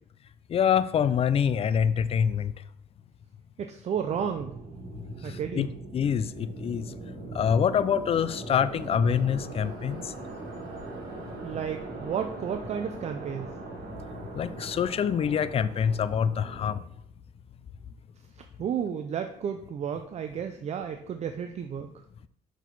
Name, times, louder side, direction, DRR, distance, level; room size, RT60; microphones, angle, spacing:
voice 1, 0.5-2.5 5.2-5.7 5.9-6.9 7.3-10.1 14.4-16.9, left 7 dB, 35° left, 14 dB, 0.4 m, -25 dB
voice 2, 3.6-4.5 5.2-5.7 11.4-13.5 18.6-21.9, right 8 dB, 40° right, 7 dB, 0.5 m, -32 dB
sound 1, 4.0-16.8, right 2 dB, 60° right, 1.9 m, -40 dB
6.2 x 4.6 x 4.0 m, 0.69 s
cardioid pair, 110°, 17 cm